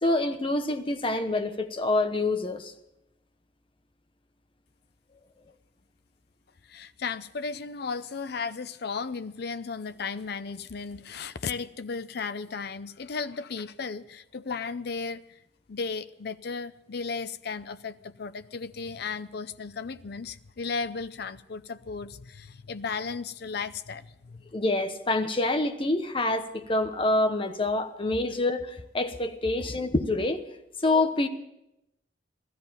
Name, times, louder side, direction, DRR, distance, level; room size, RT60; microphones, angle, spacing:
voice 1, 0.0-2.7 24.5-30.4 30.8-31.3, left 2 dB, 30° left, 8 dB, 1.0 m, -26 dB
voice 2, 6.7-15.2 15.7-24.4 28.3-28.4 29.6-29.8, left 5 dB, 65° left, 13 dB, 0.6 m, -35 dB
15.5 x 13.0 x 5.7 m, 0.86 s
head